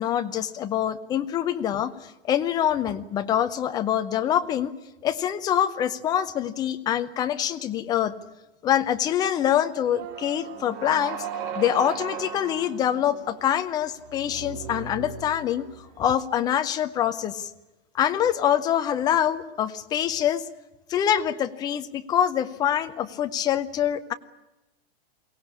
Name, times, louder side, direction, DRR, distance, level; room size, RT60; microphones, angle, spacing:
voice 1, 0.0-4.7 5.0-8.2 8.6-11.3 11.5-15.7 16.0-17.5 17.9-20.4 20.9-24.1, left 10 dB, 10° left, 9 dB, 0.7 m, -25 dB
sound 1, 10.0-16.0, right 7 dB, 45° right, 3.1 m, -37 dB
22.5 x 18.0 x 9.8 m, 1.0 s
hypercardioid pair, 160°, 31 cm